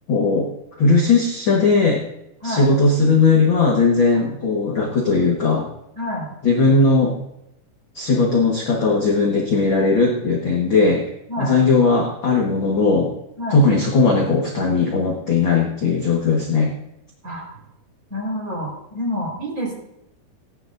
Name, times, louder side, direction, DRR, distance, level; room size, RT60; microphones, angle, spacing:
voice 1, 0.1-0.5 0.8-2.0 2.4-5.7 6.4-7.2 7.9-11.1 11.4-13.1 13.5-16.7, left 3 dB, 50° left, -2 dB, 1.4 m, -18 dB
voice 2, 5.9-6.3 11.3-11.5 13.4-13.6 17.2-17.5 18.1-19.7, equal, 20° right, -3 dB, 4.9 m, -28 dB
19.5 x 11.0 x 2.7 m, 0.85 s
omnidirectional pair, 4.4 m